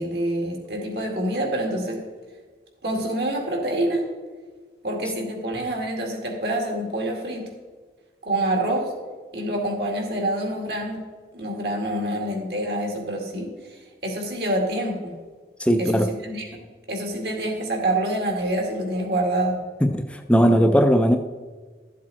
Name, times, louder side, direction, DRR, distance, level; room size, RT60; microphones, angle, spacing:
voice 1, 0.0-2.0 2.8-4.1 4.8-7.5 8.2-8.9 9.3-11.0 11.3-15.2 15.8-16.6 16.9-19.6, right 1 dB, 70° right, 1 dB, 2.2 m, -26 dB
voice 2, 15.6-16.1 19.8-21.2, equal, 5° left, 7 dB, 0.4 m, -18 dB
12.5 x 7.5 x 4.1 m, 1.4 s
head